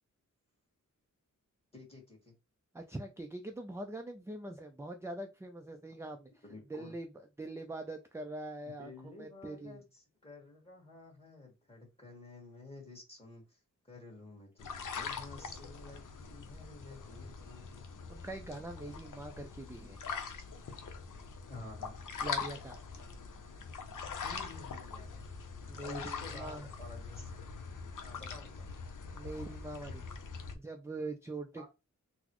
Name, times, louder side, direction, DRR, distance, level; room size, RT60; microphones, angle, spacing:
voice 1, 1.7-2.3 6.4-6.9 8.8-13.6 13.9-17.8 21.5-22.0 24.2-25.2 25.8-27.4 28.0-28.7 31.6-31.7, left 2 dB, 20° left, 1.5 m, -51 dB
voice 2, 2.7-6.4 6.7-7.1 7.4-9.8 18.1-20.0 22.2-22.8 25.7-26.7 29.1-30.1 30.5-31.7, right 2 dB, 10° right, 0.3 m, -43 dB
sound 1, 14.6-30.6, left 5 dB, 80° left, 0.6 m, -43 dB
3.9 x 2.0 x 2.9 m
wide cardioid pair, 105°, 31 cm